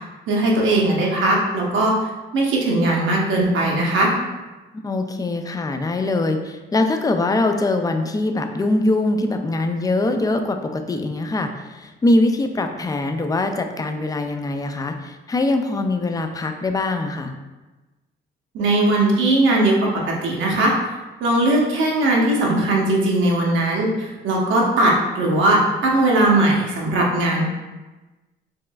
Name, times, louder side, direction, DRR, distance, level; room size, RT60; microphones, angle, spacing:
voice 1, 0.3-2.0 2.3-4.1 18.5-19.7 20.0-20.7 21.2-27.4, right 2 dB, 75° right, -2 dB, 1.0 m, -19 dB
voice 2, 4.7-17.3, left 2 dB, 20° left, 6 dB, 0.4 m, -22 dB
4.5 x 3.1 x 2.3 m, 1.1 s
cardioid pair, 90°, 20 cm